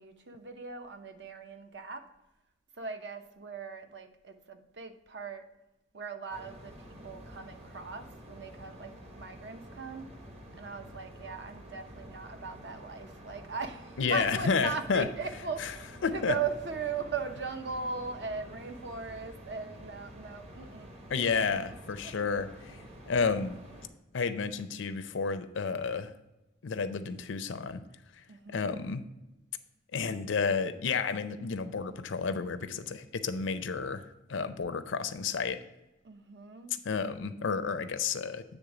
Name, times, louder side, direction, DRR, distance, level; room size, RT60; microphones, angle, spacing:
voice 1, 0.0-2.1 2.7-5.5 5.9-6.7 7.0-10.1 10.6-20.9 21.3-21.5 22.0-22.2 28.3-28.8 36.0-36.7, right 4 dB, 60° right, 7 dB, 0.7 m, -39 dB
sound 1, 6.3-23.9, equal, 35° right, 1.0 m, -49 dB
voice 2, 14.0-15.1 15.6-15.7 16.0-16.3 21.1-22.8 23.1-23.6 24.1-26.1 26.6-27.8 28.5-29.0 29.9-34.0 34.3-35.6 36.8-38.4, left 5 dB, 85° left, 11 dB, 0.5 m, -31 dB
8.3 x 3.5 x 4.8 m, 0.97 s
head